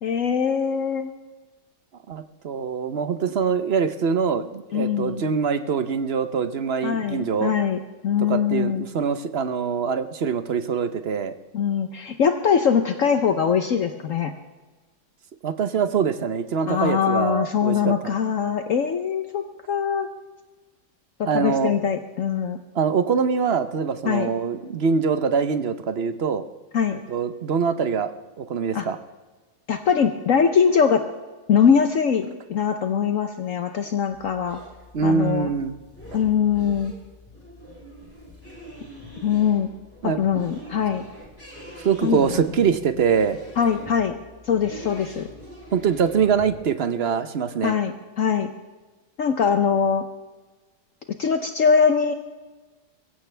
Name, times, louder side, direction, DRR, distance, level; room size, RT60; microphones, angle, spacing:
voice 1, 0.0-1.1 4.7-5.2 6.8-8.9 11.5-14.3 16.7-20.1 21.2-22.6 24.0-24.3 26.7-27.0 28.7-28.9 29.7-31.0 31.5-34.6 35.0-35.5 36.1-36.9 39.2-39.7 40.0-41.0 42.0-42.3 43.6-44.1 44.5-45.3 47.6-48.5 49.2-50.0 51.2-52.1, left 7 dB, 60° left, 7 dB, 1.1 m, -22 dB
voice 2, 2.1-7.5 8.2-11.3 15.4-18.1 21.3-21.7 22.7-26.4 27.1-28.1 28.4-29.0 34.9-35.8 40.0-40.2 41.8-43.4 45.7-47.8, right 6 dB, 45° right, 10 dB, 0.9 m, -24 dB
sound 1, 34.1-46.5, right 1 dB, 10° left, 4.7 m, -43 dB
22.5 x 15.5 x 3.4 m, 1.3 s
omnidirectional pair, 1.7 m